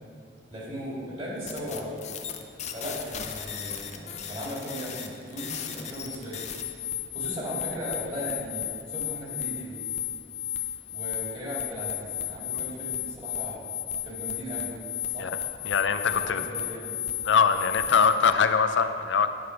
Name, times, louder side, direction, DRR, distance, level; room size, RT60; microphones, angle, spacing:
voice 1, 0.5-2.1 2.7-6.4 7.1-9.8 10.9-13.7 14.0-14.7 15.1-15.3 16.2-17.0, equal, 35° right, -5 dB, 2.4 m, -37 dB
sound 1, 1.5-18.3, left 10 dB, 40° left, 0.6 m, -34 dB
voice 2, 15.6-16.4 17.3-19.3, left 6 dB, 85° left, 9 dB, 0.5 m, -22 dB
9.4 x 6.6 x 4.6 m, 2.4 s
head